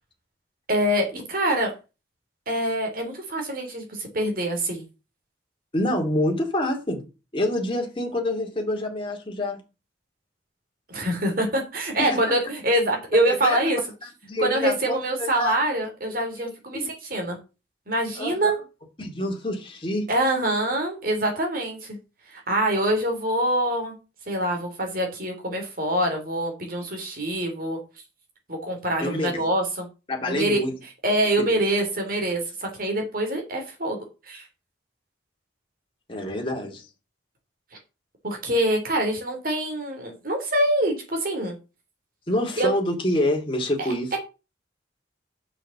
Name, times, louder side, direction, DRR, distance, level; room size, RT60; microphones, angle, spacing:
voice 1, 0.7-1.7 2.5-4.8 10.9-13.8 14.4-17.4 17.9-18.6 20.1-22.0 22.3-23.9 24.3-27.8 28.5-29.9 30.3-30.6 31.0-34.4 38.2-41.6 42.6-42.7 43.8-44.2, right 1 dB, 50° right, 2 dB, 3.1 m, -25 dB
voice 2, 5.7-7.0 7.3-9.6 13.3-13.7 14.2-15.6 16.4-16.5 16.7-16.9 18.2-18.4 19.0-20.1 29.0-29.4 30.1-30.7 31.4-31.6 36.1-36.9 42.3-44.1, left 1 dB, 25° left, 1 dB, 2.5 m, -27 dB
6.5 x 6.1 x 7.0 m, 0.30 s
head